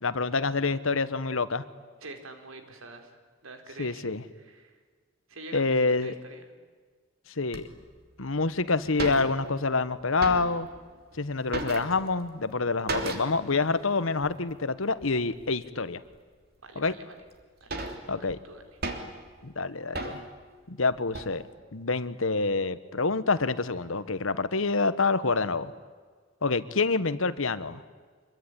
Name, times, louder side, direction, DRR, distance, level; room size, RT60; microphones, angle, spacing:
voice 1, 0.0-1.6 3.8-4.2 5.5-6.1 7.4-7.7 8.2-10.7 11.2-16.0 16.7-16.9 18.1-18.4 19.4-20.2 20.7-21.4 21.7-25.7 26.4-27.8, left 3 dB, 80° left, 13 dB, 1.2 m, -27 dB
voice 2, 2.0-4.0 4.4-4.8 5.3-6.5 16.6-17.1 17.6-18.6, right 2 dB, 85° right, 6 dB, 4.3 m, -46 dB
sound 1, 7.5-7.6 8.3-8.4 8.6-8.7 8.9-9.7 10.0-10.8 11.1-12.3 12.9-13.5 13.7-13.8 14.2-14.4 15.0-15.5 16.1-16.2 16.9-17.0 17.3-19.3 19.9-20.4 20.9-21.4, right 2 dB, 50° right, 3.2 m, -35 dB
26.0 x 22.5 x 10.0 m, 1.5 s
head